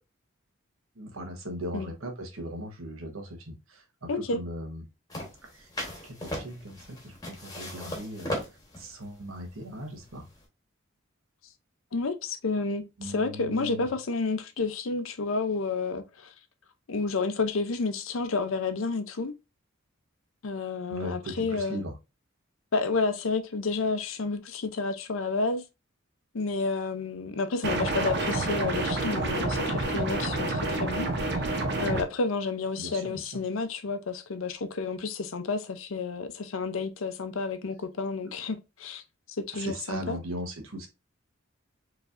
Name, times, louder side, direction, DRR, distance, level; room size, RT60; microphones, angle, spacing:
voice 1, 1.0-4.9 5.5-5.7 6.0-10.2 13.0-13.9 20.9-22.0 27.7-27.9 32.8-33.4 38.2-38.3 39.5-40.9, equal, 85° right, 1.2 m, -39 dB
voice 2, 4.1-4.4 11.9-16.3 16.9-19.3 20.4-21.8 22.7-25.6 26.3-31.1 31.8-39.0 39.5-40.2, left 4 dB, 75° left, 0.6 m, -30 dB
sound 1, 5.1-10.4, left 1 dB, 20° left, 1.3 m, -38 dB
sound 2, 27.6-32.0, right 2 dB, 55° right, 0.8 m, -28 dB
4.8 x 3.3 x 2.5 m
head